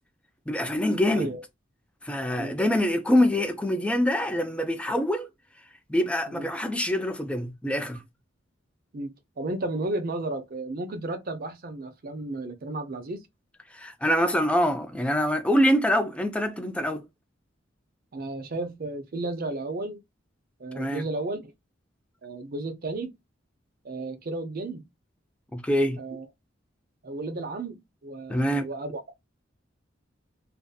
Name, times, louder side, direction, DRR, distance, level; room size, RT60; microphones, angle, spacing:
voice 1, 0.5-1.3 2.0-5.3 5.9-8.0 13.7-17.0 20.8-21.0 25.5-26.0 28.3-28.7, equal, 5° left, 0.3 m, -25 dB
voice 2, 8.9-13.2 18.1-20.0 20.6-21.5 22.2-23.1 23.8-24.8 26.0-26.3 27.0-29.0, right 2 dB, 50° right, 0.5 m, -33 dB
2.5 x 2.4 x 2.2 m
head